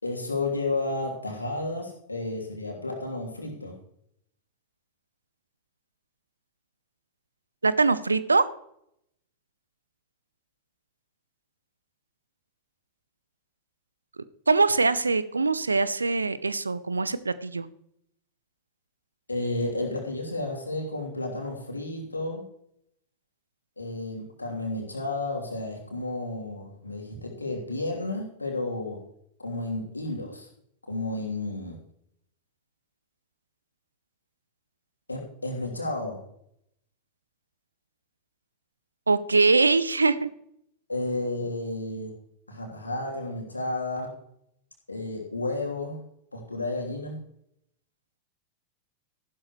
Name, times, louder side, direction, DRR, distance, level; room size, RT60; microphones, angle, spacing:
voice 1, 0.0-3.8 19.3-22.4 23.8-29.0 29.4-30.5 30.9-31.8 35.1-36.2 40.9-42.1 42.5-44.2 44.9-46.0 46.3-47.2, left 2 dB, 80° left, -1 dB, 3.1 m, -32 dB
voice 2, 7.6-8.4 14.5-17.7 39.1-40.3, right 3 dB, 80° right, 16 dB, 0.6 m, -22 dB
14.0 x 12.0 x 3.1 m, 0.73 s
figure-of-eight pair, 90°, 0 cm